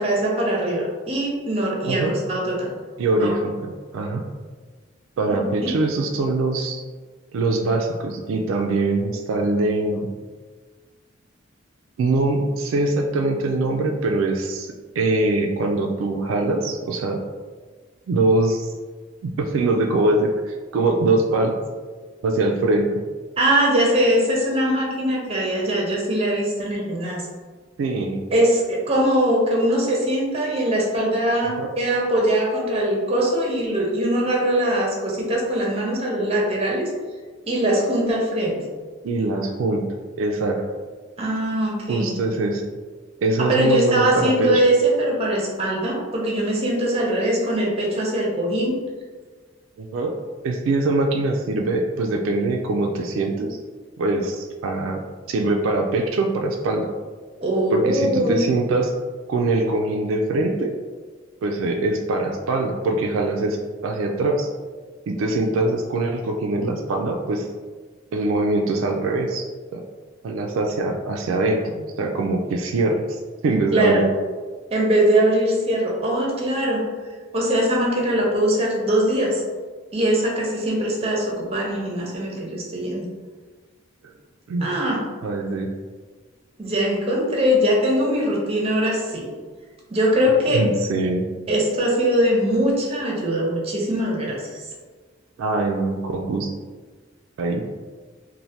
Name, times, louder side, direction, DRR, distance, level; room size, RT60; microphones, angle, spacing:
voice 1, 0.0-2.7 3.2-3.3 5.3-5.8 23.4-27.3 28.3-36.9 37.4-38.6 41.2-42.1 43.4-48.8 57.4-58.5 73.7-74.1 74.7-76.8 77.3-79.4 79.9-83.1 84.6-85.0 86.6-89.3 89.9-90.6 91.5-94.6, right 1 dB, 30° right, -2 dB, 0.5 m, -21 dB
voice 2, 1.8-2.2 3.0-4.3 5.2-6.8 7.3-10.1 12.0-17.2 18.1-18.7 19.2-21.5 22.2-23.0 27.8-28.2 31.6-31.7 39.0-39.8 40.2-40.6 41.9-42.6 43.2-44.5 49.8-50.2 50.4-53.6 54.0-56.9 57.7-58.9 59.3-60.7 61.4-63.6 63.8-64.5 65.1-67.5 68.1-69.5 69.7-69.8 70.2-74.0 84.5-84.7 85.2-85.7 90.5-91.3 95.4-96.5 97.4-97.6, right 2 dB, 80° right, 3 dB, 0.3 m, -23 dB
3.1 x 2.1 x 2.7 m, 1.4 s
head